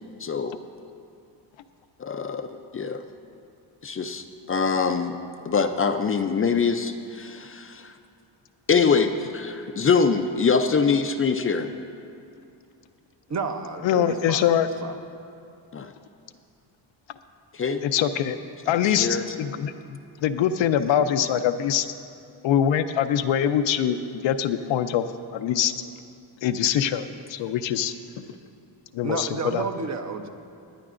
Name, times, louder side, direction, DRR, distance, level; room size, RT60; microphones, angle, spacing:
voice 1, 0.2-0.6 2.0-3.0 3.8-5.1 5.4-7.9 8.7-11.7 15.7-15.9 17.5-17.8 18.7-19.4, left 5 dB, 30° left, 7 dB, 0.4 m, -24 dB
voice 2, 13.3-14.5 14.8-15.0 29.0-30.3, right 4 dB, 35° right, 6 dB, 0.8 m, -31 dB
voice 3, 13.8-14.7 17.8-18.4 18.7-19.7 20.2-21.9 22.4-25.0 25.3-25.7 26.4-28.2 28.9-29.6, left 9 dB, 75° left, 9 dB, 0.6 m, -23 dB
20.0 x 9.9 x 2.5 m, 2.5 s
cardioid pair, 90°, 46 cm